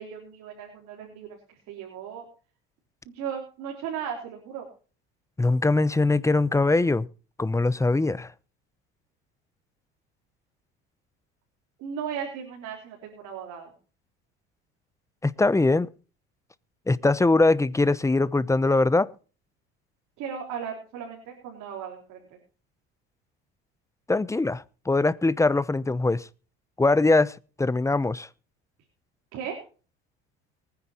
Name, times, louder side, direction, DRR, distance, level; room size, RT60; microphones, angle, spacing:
voice 1, 0.0-2.2 3.1-4.7 11.8-13.7 20.2-22.2 29.3-29.6, right 7 dB, 70° right, 4.1 m, -36 dB
voice 2, 5.4-7.1 7.4-8.3 15.2-15.9 16.9-19.1 24.1-26.3 26.8-28.3, left 2 dB, 10° left, 0.8 m, -22 dB
23.5 x 9.9 x 2.9 m
supercardioid pair, 85°, 30 cm